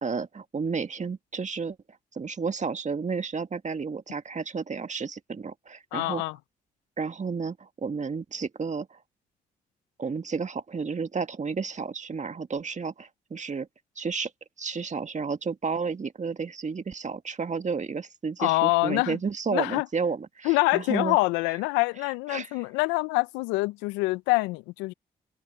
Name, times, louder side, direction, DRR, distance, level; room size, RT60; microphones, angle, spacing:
voice 1, 0.0-1.8 2.1-6.2 7.0-9.0 10.0-13.7 13.9-14.3 14.6-21.2 22.3-22.5, right 5 dB, 40° right, 1.9 m, -32 dB
voice 2, 5.9-6.4 18.4-19.2 19.5-19.9 20.4-24.9, left 24 dB, 90° left, 0.5 m, -25 dB
hypercardioid pair, 45°, 18 cm